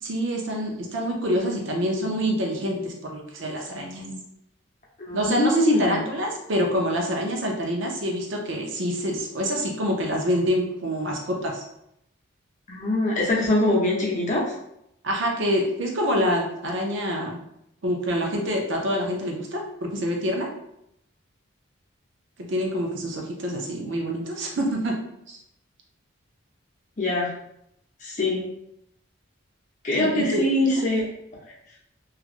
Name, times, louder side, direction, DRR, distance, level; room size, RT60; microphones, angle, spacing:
voice 1, 0.0-4.1 5.1-11.6 15.0-17.4 17.8-20.5 22.4-24.9 25.3-25.4 30.0-30.7, equal, 60° right, 0 dB, 0.6 m, -26 dB
voice 2, 5.0-6.0 12.7-14.4 27.0-27.3 28.0-28.5 29.8-31.1, left 1 dB, 35° left, -4 dB, 0.7 m, -23 dB
3.0 x 2.4 x 2.5 m, 0.78 s
head